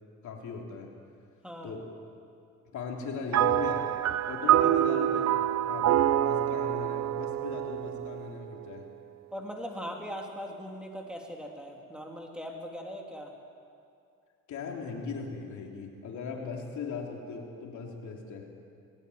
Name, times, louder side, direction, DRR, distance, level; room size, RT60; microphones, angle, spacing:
voice 1, 0.2-0.9 1.6-1.8 2.7-3.9 4.3-5.4 5.7-8.8 14.5-18.5, left 5 dB, 75° left, 1 dB, 3.3 m, -38 dB
voice 2, 1.4-1.7 9.3-13.3, equal, 5° right, 1 dB, 3.2 m, -40 dB
sound 1, 3.3-8.8, right 12 dB, 60° right, 0.8 m, -26 dB
20.5 x 16.0 x 9.5 m, 2.4 s
cardioid pair, 90°, 30 cm